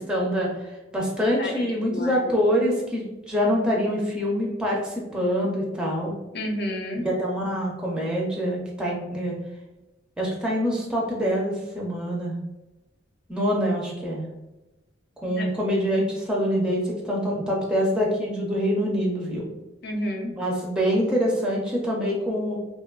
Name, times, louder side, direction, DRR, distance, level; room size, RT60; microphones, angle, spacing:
voice 1, 0.1-0.7 0.9-6.2 7.0-9.4 10.2-12.4 13.3-14.2 15.2-19.5 20.3-22.6, equal, 5° right, -3 dB, 0.4 m, -25 dB
voice 2, 1.4-2.3 6.3-7.1 15.2-15.5 19.8-20.3, left 1 dB, 55° left, 2 dB, 0.5 m, -31 dB
2.8 x 2.2 x 2.3 m, 1.0 s
head